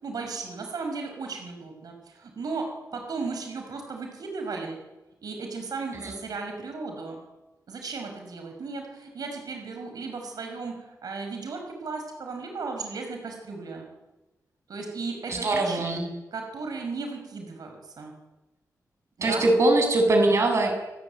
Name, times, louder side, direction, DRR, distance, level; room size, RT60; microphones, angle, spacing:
voice 1, 0.0-2.7 2.9-4.8 5.2-7.2 7.7-10.7 11.0-13.9 14.7-15.8 16.3-18.1 19.3-19.4, right 4 dB, 75° right, 3 dB, 5.6 m, -35 dB
voice 2, 15.3-16.0 19.2-20.7, right 2 dB, 45° right, 3 dB, 7.6 m, -22 dB
28.5 x 19.5 x 9.4 m, 1.1 s
wide cardioid pair, 165°, 7 cm